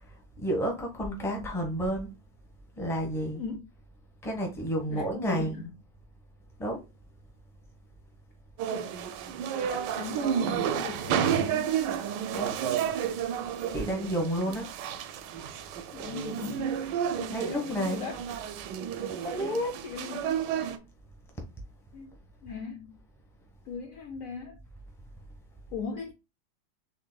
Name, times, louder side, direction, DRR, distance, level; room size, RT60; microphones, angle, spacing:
voice 1, 0.4-2.1 2.8-3.4 4.2-5.6 6.6-6.8 12.3-12.6 13.7-14.7 17.3-18.0 19.1-19.7, equal, ahead, 0.6 m, -30 dB
voice 2, 4.9-5.7 8.7-8.9 9.7-11.8 15.9-16.8 17.2-18.1 19.4-19.6 19.8-20.4 21.9-23.0 23.7-24.6 25.7-26.1, left 5 dB, 85° left, 0.7 m, -39 dB
sound 1, 8.6-20.8, right 9 dB, 75° right, 1.1 m, -31 dB
6.7 x 2.9 x 2.2 m
omnidirectional pair, 2.1 m